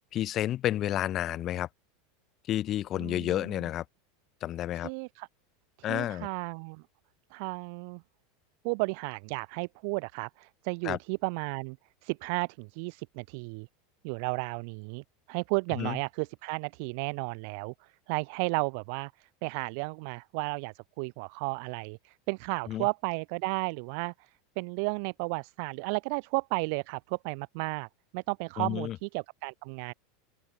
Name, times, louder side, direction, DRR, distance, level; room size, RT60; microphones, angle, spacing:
voice 1, 0.1-1.7 2.5-3.8 4.4-4.9 5.8-6.3 10.8-11.0 15.8-16.0 22.7-22.9 28.6-29.0, left 12 dB, 45° left, 0.5 m, -30 dB
voice 2, 3.0-3.6 4.8-5.3 5.9-6.8 7.3-8.0 8.6-11.8 12.0-13.7 14.0-19.1 19.4-24.1 24.6-27.9 28.1-29.9, right 36 dB, 60° right, 2.1 m, -33 dB
open air
hypercardioid pair, 95°, 0 cm